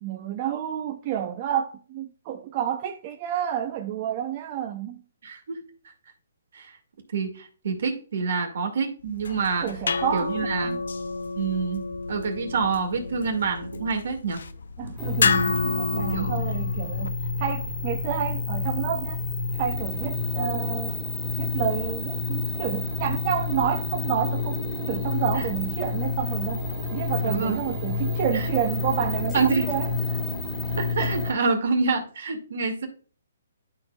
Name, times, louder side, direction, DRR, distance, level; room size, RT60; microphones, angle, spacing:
voice 1, 0.0-5.0 9.6-10.3 10.6-10.8 14.8-19.2 19.6-21.0 21.4-24.6 24.8-26.6 26.9-29.9, right 10 dB, 30° right, 0.5 m, -29 dB
voice 2, 5.2-5.6 6.6-6.7 7.1-9.7 10.1-10.8 11.4-14.4 16.1-16.3 27.2-27.6 28.3-28.4 29.3-29.7 30.7-32.9, right 5 dB, 60° right, 1.9 m, -27 dB
sound 1, 9.1-17.1, left 4 dB, 80° left, 0.6 m, -30 dB
sound 2, 15.0-31.3, left 3 dB, 5° left, 1.7 m, -29 dB
11.5 x 4.4 x 2.3 m
hypercardioid pair, 160°, 0 cm